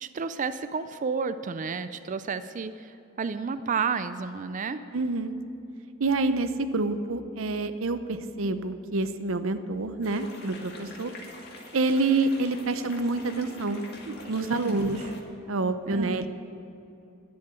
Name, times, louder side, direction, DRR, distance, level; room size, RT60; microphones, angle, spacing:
voice 1, 0.0-4.8 14.5-14.9 15.9-16.3, right 5 dB, 40° right, 12 dB, 0.4 m, -31 dB
voice 2, 4.9-5.3 6.0-11.1 11.7-15.0 15.5-16.3, right 3 dB, 80° right, 11 dB, 0.7 m, -27 dB
sound 1, 10.0-15.2, left 2 dB, 55° left, 1.9 m, -45 dB
11.5 x 7.9 x 8.2 m, 2.8 s
head